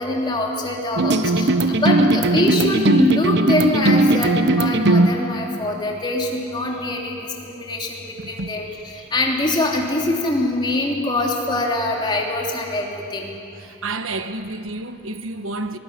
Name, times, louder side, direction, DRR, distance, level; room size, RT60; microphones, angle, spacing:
voice 1, 0.0-8.7 8.9-13.3, left 2 dB, 20° left, 3.2 m, -24 dB
sound 1, 1.0-5.1, right 2 dB, 55° right, 1.0 m, -18 dB
voice 2, 8.2-8.6 9.0-9.1 13.6-15.8, right 2 dB, 80° right, 1.3 m, -30 dB
24.5 x 19.0 x 9.8 m
head